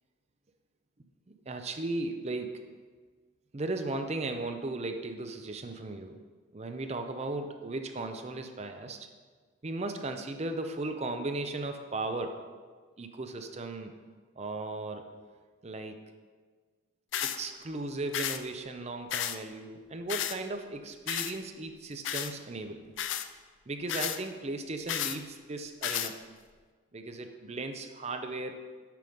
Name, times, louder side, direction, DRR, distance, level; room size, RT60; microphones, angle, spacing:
voice 1, 1.3-2.6 3.5-6.2 6.5-9.1 9.6-12.4 13.0-13.9 14.4-15.1 15.6-16.0 17.2-22.8 23.7-26.2 26.9-28.6, right 2 dB, 30° right, 6 dB, 0.5 m, -36 dB
sound 1, 17.1-17.4 18.1-18.4 19.1-19.4 20.1-20.4 21.1-21.3 22.0-22.3 23.0-23.3 23.9-24.2 24.9-25.2 25.8-26.1, left 10 dB, 65° left, 0.4 m, -32 dB
7.5 x 5.5 x 5.2 m, 1.5 s
head